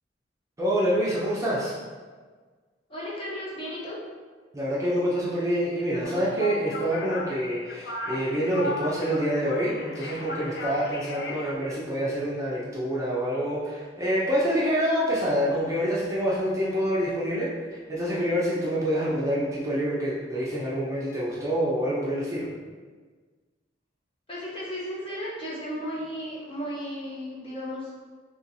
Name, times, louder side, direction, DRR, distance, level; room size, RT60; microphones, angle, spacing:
voice 1, 0.6-1.7 4.5-17.5 17.9-22.5, equal, 15° right, -7 dB, 0.6 m, -26 dB
voice 2, 2.9-4.0 24.3-27.9, equal, 30° left, -7 dB, 0.9 m, -34 dB
sound 1, 6.0-11.5, left 2 dB, 60° left, 0.4 m, -36 dB
4.2 x 3.0 x 2.7 m, 1.5 s
head